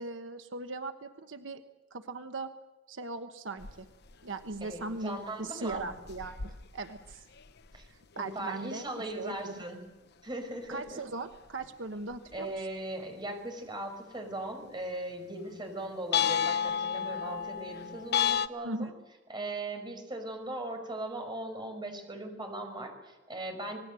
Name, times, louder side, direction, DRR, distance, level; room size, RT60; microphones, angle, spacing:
voice 1, 0.0-1.7 1.9-2.5 2.9-3.9 4.2-7.2 7.9-9.6 10.7-12.5 18.6-18.9, right 3 dB, 90° right, 8 dB, 1.2 m, -39 dB
sound 1, 3.6-3.8 4.1-4.2 4.5-5.0 5.7-7.9 8.2-8.4 8.7-8.8 10.9-11.0 11.6-11.7 12.1-12.4 16.1-18.5, left 8 dB, 60° left, 1.0 m, -31 dB
voice 2, 4.6-5.9 7.7-7.9 8.2-9.8 10.2-11.0 11.9-12.0 12.3-18.9 19.3-23.8, right 1 dB, 25° right, 5 dB, 5.6 m, -39 dB
26.5 x 20.0 x 7.7 m, 1.1 s
head